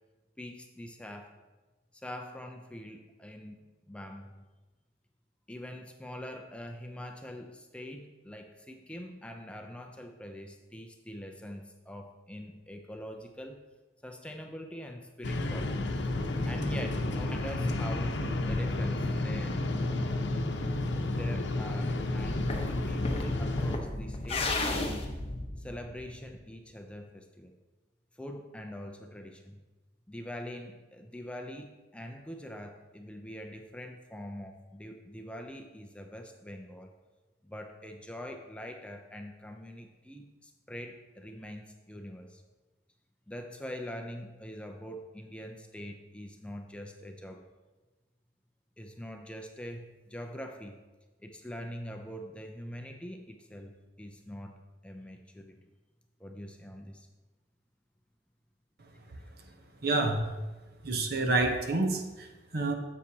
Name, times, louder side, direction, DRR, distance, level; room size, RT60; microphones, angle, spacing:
voice 1, 0.4-1.3 1.9-3.6 3.9-4.4 5.5-13.6 14.0-15.9 16.4-18.2 18.5-19.6 21.2-25.1 25.6-27.5 28.1-29.6 30.1-36.9 37.4-42.4 43.3-47.4 48.8-50.8 51.2-55.6 56.2-57.1 59.1-59.2, equal, 5° left, 4 dB, 0.5 m, -44 dB
sound 1, 15.2-23.8, left 2 dB, 85° left, 0.7 m, -31 dB
sound 2, 22.2-26.4, left 2 dB, 35° left, 0.8 m, -34 dB
voice 2, 59.8-60.2 60.8-62.7, right 2 dB, 60° right, 4 dB, 0.9 m, -28 dB
9.8 x 7.3 x 2.8 m, 1.2 s
head